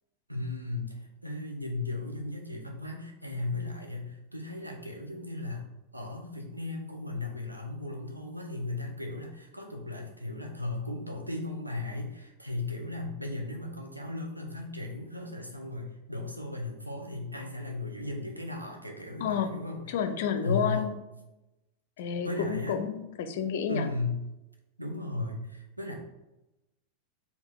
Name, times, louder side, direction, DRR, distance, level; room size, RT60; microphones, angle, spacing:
voice 1, 0.3-5.6 5.9-19.8 20.4-20.9 22.0-22.9 23.7-24.2 24.8-25.9, left 2 dB, 85° right, 1 dB, 0.8 m, -36 dB
voice 2, 19.2-19.5 19.9-21.0 22.0-23.9, left 7 dB, 55° left, 8 dB, 0.5 m, -30 dB
4.5 x 2.8 x 3.9 m, 0.97 s
figure-of-eight pair, 90°, 0 cm